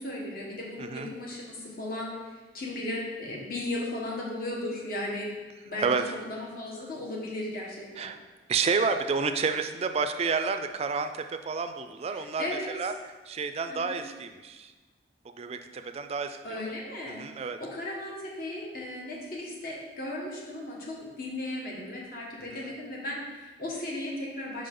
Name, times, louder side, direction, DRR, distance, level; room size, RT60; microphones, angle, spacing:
voice 1, 0.0-5.3 5.6-8.1 12.1-12.8 13.7-14.0 16.4-24.7, left 1 dB, 55° left, -2 dB, 1.3 m, -36 dB
voice 2, 0.8-1.1 5.8-6.1 8.0-8.2 8.5-12.4 12.8-12.9 13.3-14.7 15.4-16.6 17.1-17.6 22.5-22.7, right 5 dB, 35° right, 8 dB, 0.3 m, -30 dB
5.2 x 5.0 x 3.8 m, 1.3 s
head